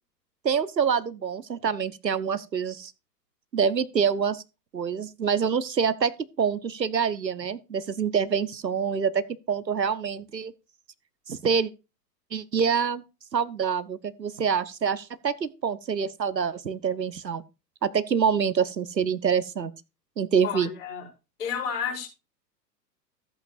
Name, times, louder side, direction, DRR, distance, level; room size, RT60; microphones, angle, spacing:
voice 1, 0.4-2.9 3.5-4.4 4.7-6.1 6.4-10.5 11.3-11.7 12.3-13.0 13.3-17.4 17.8-19.7 20.2-20.7, right 6 dB, 80° right, 1.0 m, -26 dB
voice 2, 20.4-21.1 21.4-22.1, left 7 dB, 50° left, 5.1 m, -31 dB
14.5 x 8.2 x 2.5 m
figure-of-eight pair, 105°, 50 cm